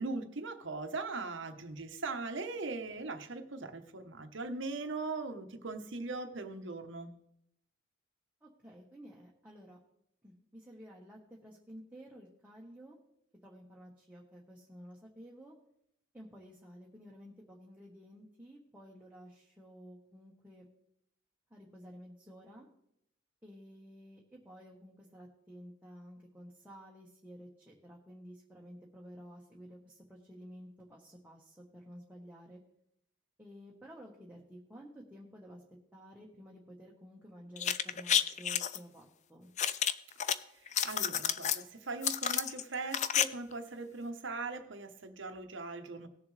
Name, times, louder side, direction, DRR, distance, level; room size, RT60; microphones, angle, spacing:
voice 1, 0.0-7.1 40.6-46.1, right 3 dB, 65° right, 7 dB, 1.1 m, -40 dB
voice 2, 8.4-9.8 10.2-13.0 13.4-15.5 16.1-20.7 21.5-22.7 23.4-32.6 33.4-35.6 35.9-39.5, equal, 10° right, -4 dB, 1.3 m, -52 dB
sound 1, 37.6-38.8 39.6-40.3 40.7-41.6 42.0-43.2 43.5-43.6, left 9 dB, 35° left, 0.4 m, -30 dB
18.5 x 7.1 x 3.3 m, 0.76 s
head